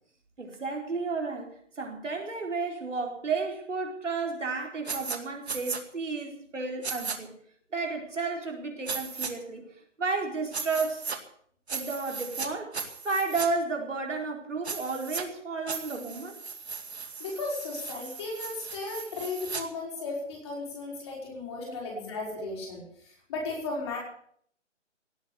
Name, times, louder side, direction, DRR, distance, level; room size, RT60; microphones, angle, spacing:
voice 1, 0.4-7.4 7.7-9.6 10.0-11.1 11.7-12.8 13.0-16.4 19.8-19.9 21.6-21.8 22.3-22.4, right 4 dB, 75° right, 2 dB, 4.5 m, -32 dB
sound 1, 4.9-5.2 5.5-5.8 6.8-7.2 8.9-9.3 10.5-11.2 11.7-12.5 12.7-13.5 14.6-15.2 15.7-19.6, right 5 dB, 60° right, 2.4 m, -36 dB
voice 2, 17.2-22.8 23.3-24.0, left 3 dB, 20° left, -3 dB, 5.5 m, -35 dB
18.0 x 8.8 x 8.3 m, 0.62 s
hypercardioid pair, 170°, 37 cm